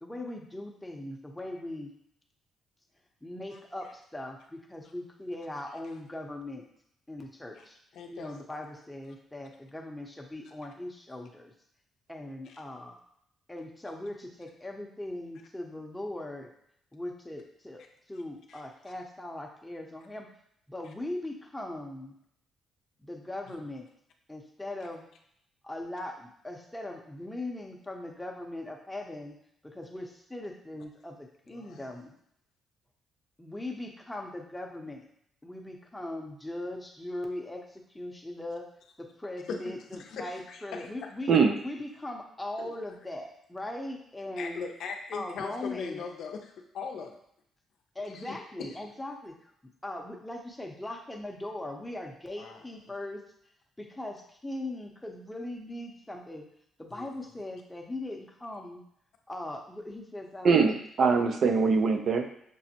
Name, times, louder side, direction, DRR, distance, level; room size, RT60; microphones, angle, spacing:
voice 1, 0.0-1.9 3.2-6.7 7.1-7.8 8.1-11.5 12.1-13.0 13.5-16.5 16.9-17.8 18.1-20.3 20.7-22.1 23.0-23.9 24.3-25.1 25.6-29.3 29.6-32.1 33.4-35.1 35.4-38.6 39.0-41.3 41.6-44.6 45.1-46.0 47.9-49.5 49.8-53.2 53.8-56.4 56.8-58.8 59.3-60.7, left 1 dB, 10° left, 0 dB, 0.7 m, -39 dB
voice 2, 7.9-8.3 12.5-12.6 18.5-18.6 23.5-23.6 31.5-31.8 39.5-40.9 42.6-42.8 44.4-47.2 48.1-48.8 52.4-52.6 56.9-57.1, left 5 dB, 75° left, 3 dB, 0.5 m, -40 dB
voice 3, 60.4-62.3, right 5 dB, 60° right, 5 dB, 0.5 m, -23 dB
6.1 x 2.1 x 2.8 m, 0.72 s
cardioid pair, 90°, 0 cm